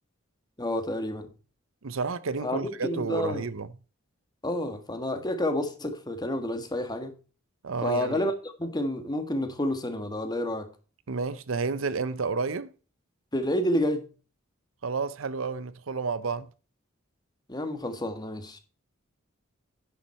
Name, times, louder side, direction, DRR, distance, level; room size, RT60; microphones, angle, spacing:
voice 1, 0.6-1.3 2.4-3.5 4.4-7.1 7.8-8.3 8.6-10.7 13.3-14.0 17.5-18.6, left 1 dB, 20° left, 1.5 m, -29 dB
voice 2, 1.8-3.7 7.6-8.3 11.1-12.7 14.8-16.5, right 4 dB, 70° right, 0.7 m, -31 dB
10.5 x 7.2 x 4.3 m
head